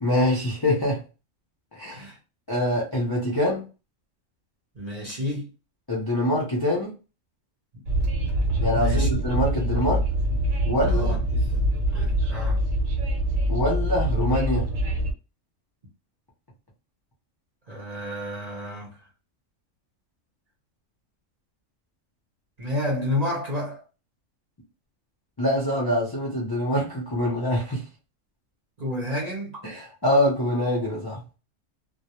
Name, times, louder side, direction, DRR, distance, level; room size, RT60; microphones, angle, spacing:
voice 1, 0.0-1.0 1.8-2.0 2.5-3.6 5.9-6.9 8.6-10.0 10.6-11.1 13.5-14.7 25.4-27.8 29.6-31.2, left 1 dB, 35° left, 0.4 m, -24 dB
voice 2, 4.7-5.5 8.7-9.2 10.9-12.6 17.7-18.9 22.6-23.8 28.8-29.6, left 1 dB, 40° right, 0.6 m, -31 dB
Train, 7.9-15.1, right 1 dB, 80° right, 1.0 m, -24 dB
2.2 x 2.1 x 2.8 m
omnidirectional pair, 1.4 m